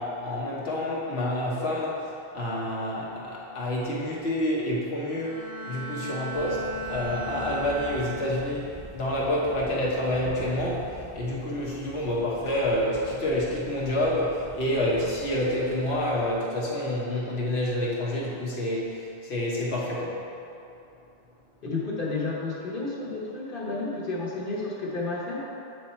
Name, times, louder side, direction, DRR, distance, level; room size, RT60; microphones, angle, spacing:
voice 1, 0.0-20.2, left 1 dB, 90° left, -5 dB, 1.4 m, -28 dB
Bowed string instrument, 5.2-8.7 9.2-9.6, right 2 dB, 30° left, 0.5 m, -37 dB
Thunder, 6.3-16.4, equal, 5° left, 0.8 m, -45 dB
voice 2, 21.6-25.4, left 3 dB, 60° left, -4 dB, 1.3 m, -31 dB
8.3 x 3.4 x 4.3 m, 2.7 s
omnidirectional pair, 1.0 m